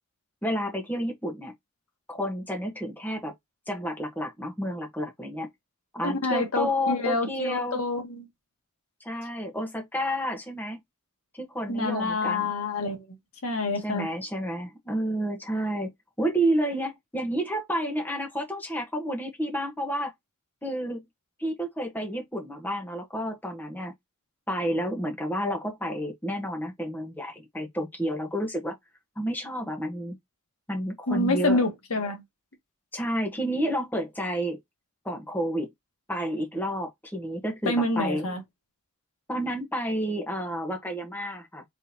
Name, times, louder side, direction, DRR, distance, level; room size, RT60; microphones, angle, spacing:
voice 1, 0.4-1.5 2.1-3.3 3.7-5.5 5.9-7.8 9.0-10.8 11.3-12.5 13.8-15.9 16.2-20.1 20.6-21.0 21.4-23.9 24.5-28.8 29.2-30.2 30.7-31.6 32.9-34.6 35.0-35.7 36.1-38.3 39.3-41.6, equal, 10° left, 1.1 m, -30 dB
voice 2, 6.0-8.3 11.7-13.2 13.4-14.1 31.1-32.2 37.6-38.4, left 2 dB, 85° left, 1.4 m, -27 dB
4.0 x 3.8 x 2.8 m
head